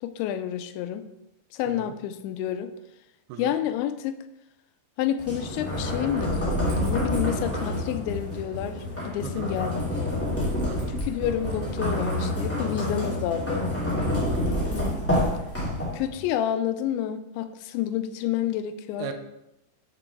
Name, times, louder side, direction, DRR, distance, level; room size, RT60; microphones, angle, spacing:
voice 1, 0.0-1.1 1.5-2.7 3.4-4.2 5.0-10.1 10.9-13.7 14.7-15.0 15.9-19.1, left 10 dB, 90° left, 11 dB, 2.8 m, -29 dB
sound 1, 5.2-16.2, left 1 dB, 5° left, 1.0 m, -28 dB
voice 2, 10.7-11.0 14.3-14.6 19.0-19.1, right 9 dB, 80° right, 6 dB, 2.5 m, -37 dB
7.5 x 5.9 x 3.6 m, 0.88 s
omnidirectional pair, 5.1 m